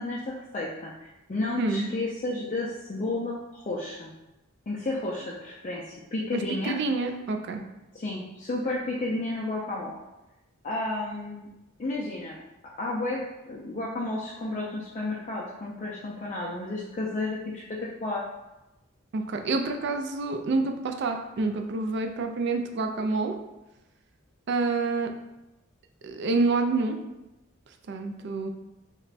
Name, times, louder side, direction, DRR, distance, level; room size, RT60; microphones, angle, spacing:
voice 1, 0.0-4.1 4.7-6.8 7.9-10.0 10.6-11.5 11.8-12.4 12.8-17.6 18.0-18.2, left 2 dB, 35° left, -5 dB, 0.4 m, -32 dB
voice 2, 1.6-1.9 6.3-7.6 19.1-23.3 24.5-25.1 26.0-27.0 27.9-28.5, right 3 dB, 55° right, 5 dB, 0.4 m, -27 dB
3.2 x 2.1 x 4.0 m, 0.98 s
head